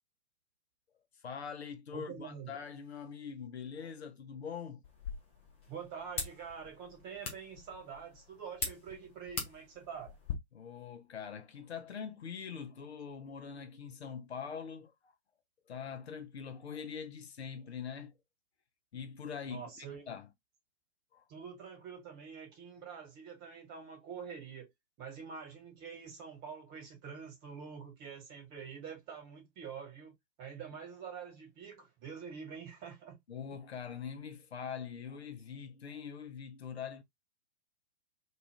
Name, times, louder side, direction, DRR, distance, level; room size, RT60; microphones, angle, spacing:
voice 1, 1.2-4.8 10.5-15.1 15.7-18.1 18.9-20.3 21.1-21.2 33.3-37.0, left 7 dB, 65° left, 0.6 m, -43 dB
voice 2, 1.9-2.6 5.7-10.2 19.4-20.1 21.3-24.7 25.0-33.2, right 6 dB, 25° right, 1.3 m, -46 dB
sound 1, 4.8-10.3, left 5 dB, 15° left, 0.3 m, -43 dB
2.4 x 2.4 x 3.3 m
figure-of-eight pair, 115°, 34 cm